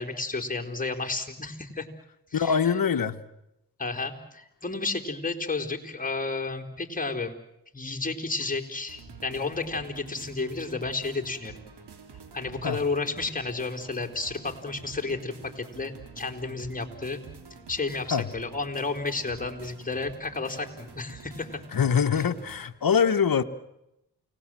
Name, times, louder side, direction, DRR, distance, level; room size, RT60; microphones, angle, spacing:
voice 1, 0.0-1.9 2.3-2.7 3.8-7.4 7.7-11.6 12.3-17.2 17.7-21.6 22.2-22.3, left 3 dB, 20° left, 4.0 m, -32 dB
voice 2, 2.3-3.2 12.6-12.8 18.1-18.3 21.7-23.4, left 7 dB, 55° left, 1.4 m, -23 dB
sound 1, 8.9-22.6, right 5 dB, 75° right, 3.6 m, -48 dB
29.5 x 19.0 x 7.7 m
supercardioid pair, 45°, 41 cm